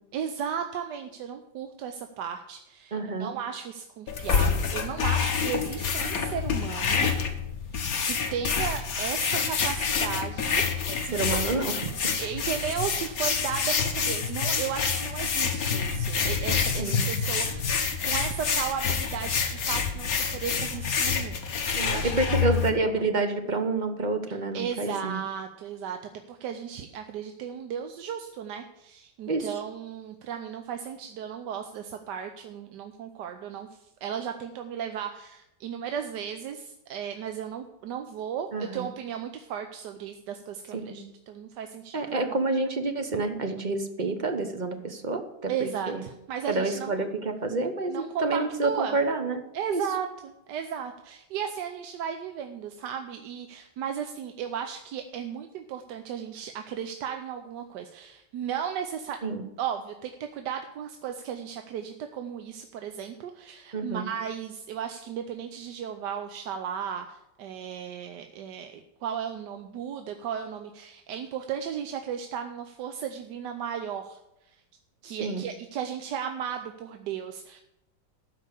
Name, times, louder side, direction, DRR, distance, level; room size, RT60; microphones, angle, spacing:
voice 1, 0.1-7.1 7.7-10.7 11.0-11.4 12.2-22.6 24.5-26.0 26.3-42.4 45.5-47.0 47.9-49.0 49.5-59.2 59.6-74.2 74.5-74.6 75.0-77.6, right 8 dB, 70° right, 6 dB, 1.3 m, -35 dB
voice 2, 2.9-3.3 10.9-11.9 16.8-17.0 21.7-25.2 29.3-29.5 38.5-38.9 40.7-41.0 41.9-46.0 46.5-49.4 49.7-49.8 59.2-59.4 63.7-64.1 75.2-75.5, right 3 dB, 35° right, 6 dB, 0.7 m, -28 dB
sound 1, 4.1-22.7, left 6 dB, 55° left, 1.6 m, -27 dB
13.0 x 5.0 x 8.1 m, 0.89 s
omnidirectional pair, 2.0 m